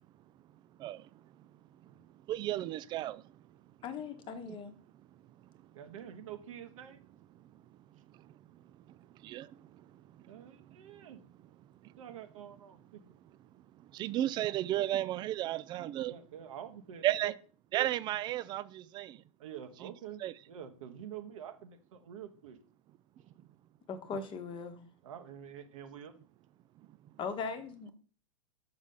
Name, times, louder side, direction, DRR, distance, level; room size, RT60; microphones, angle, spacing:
voice 1, 2.3-3.2 9.2-9.5 14.0-16.1 17.0-17.3 17.7-19.1 19.8-19.9 20.2-20.3, right 14 dB, 25° right, 0.3 m, -33 dB
voice 2, 3.8-4.7 23.9-24.9 27.2-27.9, left 5 dB, 30° left, 1.1 m, -39 dB
voice 3, 5.7-7.0 10.3-11.2 12.0-13.0 15.9-17.3 19.4-20.2 20.5-21.8 22.0-22.6 25.0-26.1, right 9 dB, 70° right, 1.0 m, -47 dB
6.3 x 5.9 x 3.6 m
hypercardioid pair, 115°, 17 cm